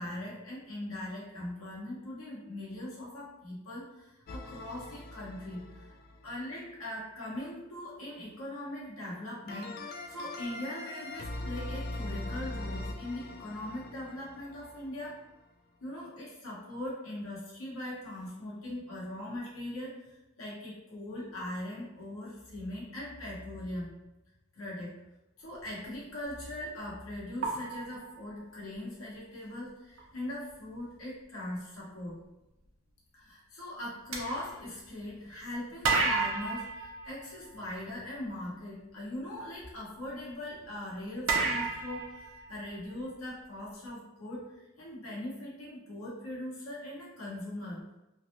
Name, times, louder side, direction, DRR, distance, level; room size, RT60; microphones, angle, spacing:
voice 1, 0.0-5.9 6.2-15.2 15.8-23.9 24.5-25.0 25.4-32.2 33.1-47.8, left 1 dB, 85° left, -6 dB, 1.1 m, -40 dB
sound 1, 4.3-6.4 9.5-15.1, left 1 dB, 45° left, 0.3 m, -41 dB
sound 2, 26.2-26.5 27.4-28.8 30.0-30.1 30.5-30.7 34.1-35.3 35.8-37.9 41.3-43.1, right 4 dB, 70° right, 0.6 m, -32 dB
3.2 x 2.6 x 2.5 m, 0.96 s
head